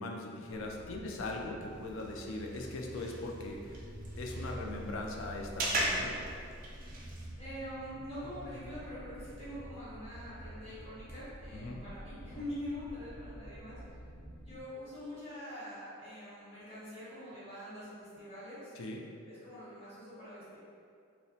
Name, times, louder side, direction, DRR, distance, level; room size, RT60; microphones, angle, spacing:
voice 1, 0.0-3.9 4.2-6.2 11.5-11.8 18.8-19.0, left 2 dB, 65° left, 1 dB, 0.3 m, -40 dB
sound 1, 0.5-14.6, right 1 dB, 10° left, 0.6 m, -48 dB
sound 2, 1.6-7.3, right 1 dB, 40° right, 0.3 m, -39 dB
voice 2, 7.4-13.8 14.4-18.7 19.2-20.6, equal, 30° left, -11 dB, 0.9 m, -44 dB
2.8 x 2.1 x 2.7 m, 2.4 s
head